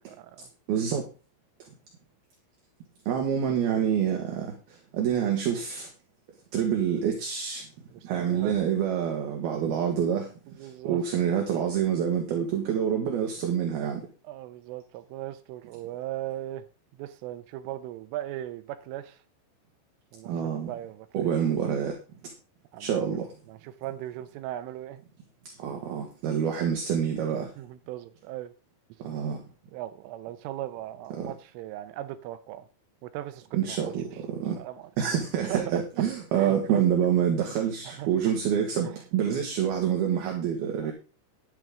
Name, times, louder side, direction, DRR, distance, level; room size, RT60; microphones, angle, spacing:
voice 1, 0.1-0.5 7.9-8.6 10.5-11.0 14.2-16.6 17.0-19.2 20.1-20.3 20.7-21.3 22.7-23.0 23.5-25.0 27.6-28.5 29.7-32.7 33.0-33.8 34.6-34.9 35.5-36.0 36.3-36.8 37.9-38.1 38.8-39.0 40.8-40.9, right 13 dB, 80° right, 3.2 m, -38 dB
voice 2, 0.7-1.1 3.1-5.9 6.5-7.7 8.0-10.3 10.6-14.0 20.2-20.7 21.1-22.0 22.8-23.3 25.6-27.5 29.0-29.4 31.2-31.3 33.5-34.6 35.0-40.9, right 8 dB, 60° right, 3.1 m, -27 dB
12.0 x 10.5 x 3.7 m
omnidirectional pair, 5.9 m